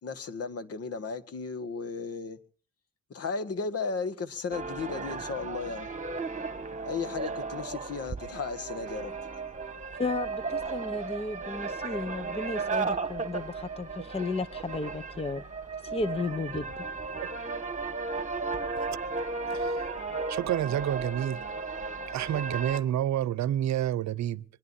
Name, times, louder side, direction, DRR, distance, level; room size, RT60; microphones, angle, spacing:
voice 1, 0.0-2.4 3.1-5.9 6.8-9.1, left 5 dB, 50° left, 1.9 m, -35 dB
sound 1, 4.5-22.8, right 4 dB, 25° right, 2.1 m, -35 dB
voice 2, 10.0-15.4 15.8-16.7, left 3 dB, 20° left, 0.9 m, -34 dB
voice 3, 19.5-19.9 20.3-21.4 22.1-24.4, right 11 dB, 65° right, 0.8 m, -29 dB
24.0 x 20.5 x 2.8 m
cardioid pair, 90°, 30 cm